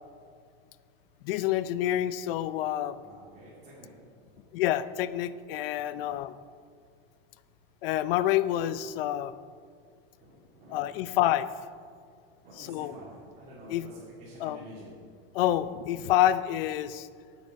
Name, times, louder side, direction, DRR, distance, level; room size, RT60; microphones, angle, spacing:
voice 1, 1.2-3.0 4.5-6.3 7.8-9.3 10.7-11.5 12.6-12.9 13.7-13.9 14.4-14.6 15.3-17.1, left 12 dB, 70° left, 15 dB, 0.5 m, -27 dB
voice 2, 3.0-3.9 5.8-6.0 10.2-11.1 12.4-14.9, right 1 dB, 25° right, -10 dB, 2.6 m, -49 dB
8.9 x 8.9 x 5.2 m, 2.1 s
supercardioid pair, 160°, 29 cm